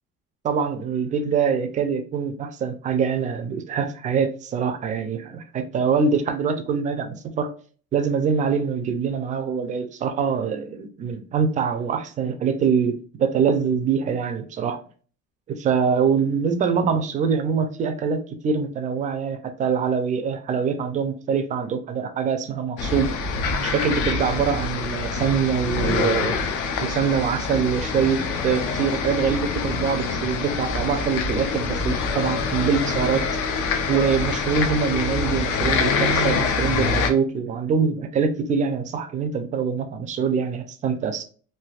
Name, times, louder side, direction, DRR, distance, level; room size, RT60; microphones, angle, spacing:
voice 1, 0.4-7.5 7.9-14.8 15.5-23.1 23.6-26.4 26.8-33.2 33.9-41.2, right 6 dB, 25° right, 0.3 m, -24 dB
sound 1, 22.8-37.1, left 4 dB, 75° left, 0.6 m, -25 dB
3.3 x 2.6 x 2.3 m
cardioid pair, 170°, 31 cm